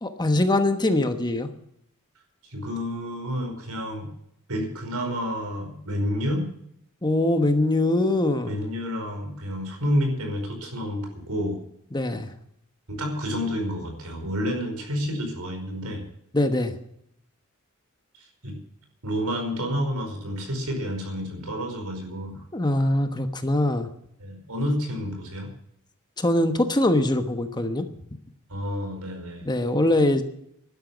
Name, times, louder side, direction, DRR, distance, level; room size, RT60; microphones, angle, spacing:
voice 1, 0.0-1.5 7.0-8.6 11.9-12.3 16.3-16.7 22.5-23.9 26.2-27.8 29.4-30.3, left 1 dB, 20° left, 8 dB, 1.1 m, -22 dB
voice 2, 2.4-4.1 4.5-6.4 8.4-11.6 12.9-16.0 18.1-18.6 19.0-22.4 24.2-25.5 28.5-29.5, equal, 80° right, 3 dB, 5.0 m, -29 dB
12.0 x 11.5 x 8.2 m, 0.73 s
head